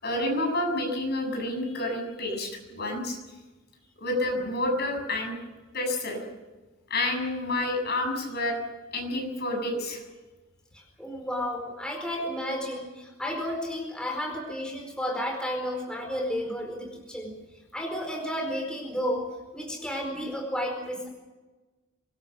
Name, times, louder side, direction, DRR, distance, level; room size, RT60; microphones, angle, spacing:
voice 1, 0.0-3.2 4.0-5.4 5.7-6.2 6.9-8.6 8.9-10.0, left 1 dB, 50° left, 3 dB, 7.3 m, -29 dB
voice 2, 10.7-17.3 17.7-19.2 19.5-21.1, equal, 5° left, 2 dB, 4.6 m, -32 dB
25.0 x 21.5 x 6.7 m, 1.2 s
head